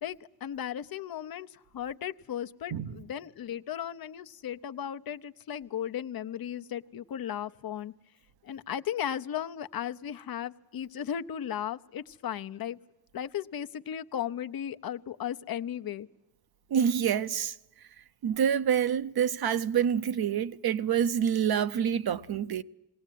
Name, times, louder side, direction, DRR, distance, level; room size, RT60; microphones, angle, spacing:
voice 1, 0.0-7.9 8.4-12.8 13.1-16.1, left 9 dB, 70° left, 0.8 m, -36 dB
voice 2, 16.7-17.5 18.2-22.6, right 8 dB, 80° right, 0.8 m, -27 dB
20.5 x 18.0 x 9.1 m
wide cardioid pair, 115°, 37 cm